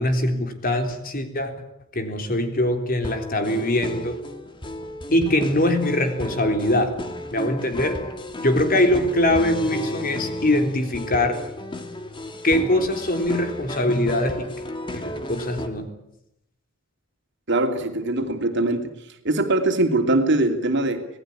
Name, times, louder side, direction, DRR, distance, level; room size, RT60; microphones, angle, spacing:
voice 1, 0.0-1.5 1.9-4.2 5.1-6.9 7.3-8.0 8.4-11.4 12.4-14.5 14.9-15.9, left 1 dB, 45° left, 6 dB, 3.6 m, -22 dB
sound 1, 3.0-15.7, left 1 dB, 25° left, 2.3 m, -33 dB
voice 2, 17.5-18.9 19.2-21.1, right 2 dB, 60° right, 6 dB, 2.8 m, -22 dB
26.5 x 19.0 x 8.7 m, 0.81 s
head